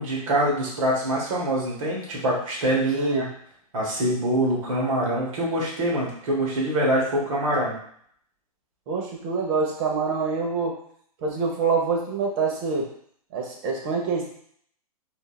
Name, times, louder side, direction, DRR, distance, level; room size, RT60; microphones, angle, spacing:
voice 1, 0.0-3.3 3.7-7.8, right 1 dB, 60° right, -3 dB, 1.4 m, -24 dB
voice 2, 2.9-3.3 8.9-10.8 11.2-12.9 13.3-14.3, right 4 dB, 45° right, 0 dB, 1.0 m, -25 dB
3.7 x 2.5 x 2.3 m, 0.64 s
hypercardioid pair, 130°, 19 cm